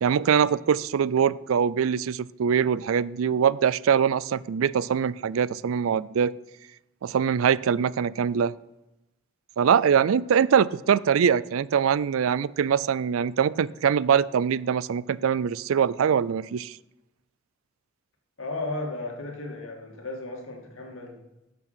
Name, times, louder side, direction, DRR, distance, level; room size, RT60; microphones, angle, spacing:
voice 1, 0.0-6.3 7.0-8.5 9.6-16.8, right 7 dB, 80° right, 19 dB, 0.4 m, -23 dB
voice 2, 18.4-21.2, left 2 dB, 75° left, 1 dB, 2.4 m, -34 dB
12.0 x 7.0 x 5.9 m, 0.95 s
head